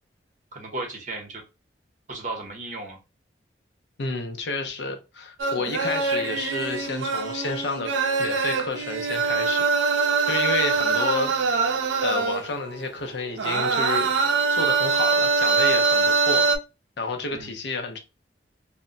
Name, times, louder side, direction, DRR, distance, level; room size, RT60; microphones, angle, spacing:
voice 1, 0.5-1.4 2.1-3.0 17.3-17.6, right 2 dB, 40° right, 0.8 m, -35 dB
voice 2, 4.0-7.9 8.2-9.7 10.3-11.3 12.0-14.1 14.5-16.5 17.0-18.0, left 3 dB, 65° left, 0.5 m, -30 dB
sound 1, 5.4-12.8 13.2-16.6, right 4 dB, 75° right, 0.4 m, -23 dB
2.1 x 2.1 x 3.7 m
head